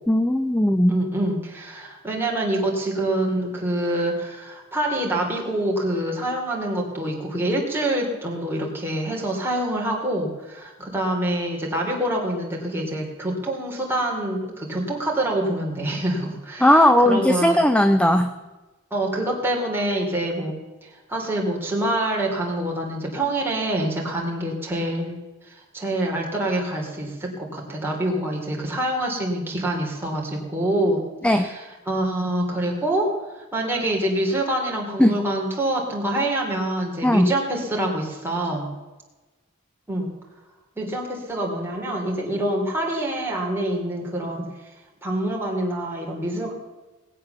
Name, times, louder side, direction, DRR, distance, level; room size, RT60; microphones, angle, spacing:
voice 1, 0.1-1.0 16.6-18.3 31.2-31.5 35.0-35.2 37.0-37.3, left 1 dB, 5° left, 8 dB, 0.6 m, -17 dB
voice 2, 0.9-17.6 18.9-20.5 20.8-25.2 25.4-38.7 39.9-40.1 40.8-44.4 45.0-46.5, right 1 dB, 10° right, -2 dB, 3.5 m, -26 dB
19.5 x 8.5 x 6.9 m, 1.2 s
head